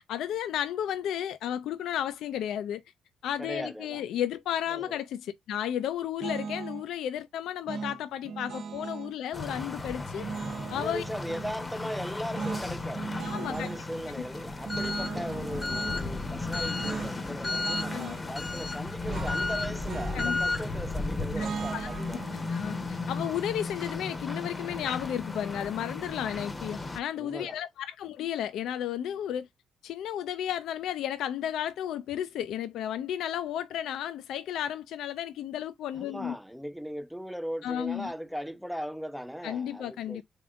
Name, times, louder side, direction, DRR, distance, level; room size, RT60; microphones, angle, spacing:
voice 1, 0.0-2.8 3.2-10.2 10.7-11.0 13.3-13.7 17.9-18.1 20.1-20.4 21.4-21.9 22.5-29.5 29.8-36.3 37.6-38.1 39.4-40.2, left 10 dB, 80° left, 0.4 m, -33 dB
voice 2, 3.4-4.0 4.7-5.0 10.7-22.2 27.2-27.6 35.9-40.2, equal, ahead, 0.4 m, -38 dB
sound 1, 6.2-6.9 7.7-9.1 10.1-11.5 12.3-13.8 14.6-16.0 16.8-17.2 17.4-18.2 19.1-20.8 21.3-24.4, right 5 dB, 65° right, 0.5 m, -38 dB
sound 2, 9.3-27.0, left 3 dB, 25° left, 0.7 m, -34 dB
3.6 x 3.5 x 2.3 m
cardioid pair, 90°, 0 cm